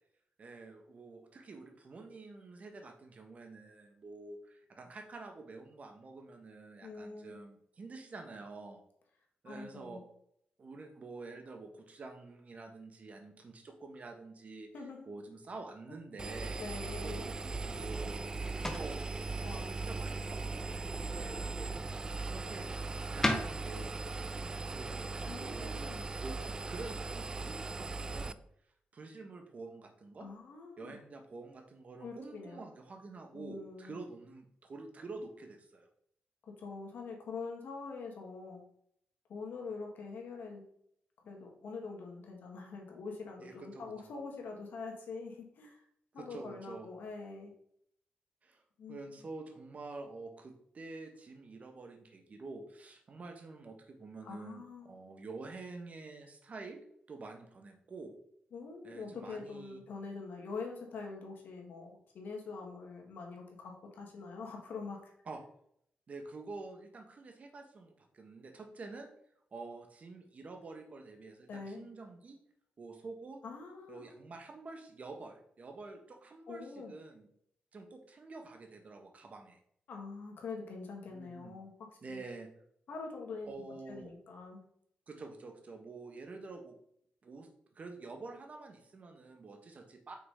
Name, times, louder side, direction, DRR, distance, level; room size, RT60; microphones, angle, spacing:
voice 1, 0.4-8.8 9.4-10.0 10.6-14.7 15.0-16.6 17.0-18.2 18.5-19.0 19.5-21.8 22.3-22.7 23.1-23.9 24.6-25.8 26.2-28.4 28.9-30.3 30.8-35.9 43.4-44.1 46.2-46.9 48.4-48.6 48.9-58.1 58.8-59.8 65.3-65.4 66.1-69.1 69.5-72.4 72.8-73.4 73.9-77.3 77.7-79.6 81.1-81.5 82.0-82.5 83.5-84.1 85.1-86.7 87.2-87.5 87.7-90.2, right 3 dB, 45° right, 4 dB, 1.3 m, -48 dB
voice 2, 6.8-7.4 9.5-10.0 14.7-15.1 15.9-16.0 16.2-17.2 19.4-19.8 25.3-26.0 30.2-31.0 32.0-32.6 33.3-34.0 36.4-38.6 39.3-40.7 41.2-45.9 46.1-47.5 48.8-49.2 54.2-54.9 58.5-65.1 71.5-71.9 73.4-74.0 76.5-76.9 79.9-82.2 82.9-83.5 83.9-84.6, left 4 dB, 80° left, 1 dB, 1.7 m, -44 dB
Engine, 16.2-28.3, right 3 dB, 25° right, 0.3 m, -39 dB
sound 1, 17.4-26.6, left 1 dB, 15° left, 0.9 m, -42 dB
5.8 x 4.1 x 4.9 m, 0.69 s
cardioid pair, 95°, 3 cm